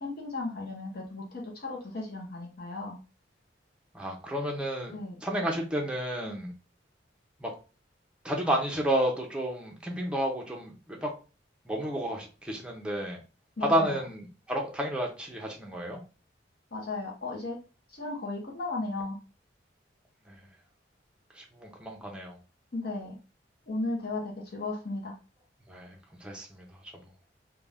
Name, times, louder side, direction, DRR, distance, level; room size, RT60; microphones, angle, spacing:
voice 1, 0.0-3.0 4.9-5.2 13.6-14.0 16.7-17.6 17.9-19.2 22.7-23.2 23.7-25.1, left 2 dB, 55° left, -1 dB, 0.7 m, -35 dB
voice 2, 3.9-4.9 5.2-6.5 7.4-7.5 8.2-11.1 11.7-13.2 13.7-16.0 20.3-20.4 21.3-22.4 25.7-26.7, right 1 dB, 5° right, -1 dB, 0.6 m, -31 dB
2.5 x 2.2 x 3.3 m, 0.33 s
head